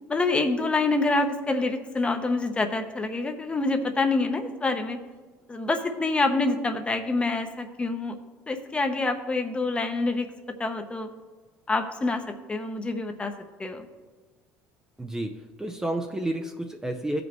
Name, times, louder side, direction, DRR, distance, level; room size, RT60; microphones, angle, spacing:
voice 1, 0.1-5.0 5.5-8.2 8.5-10.3 10.6-11.1 11.7-12.2 12.5-13.3 13.6-13.9, left 3 dB, 20° left, 6 dB, 1.0 m, -26 dB
voice 2, 15.0-17.2, right 1 dB, 10° right, 3 dB, 0.6 m, -31 dB
15.0 x 5.2 x 3.1 m, 1.4 s
cardioid pair, 105°, 6 cm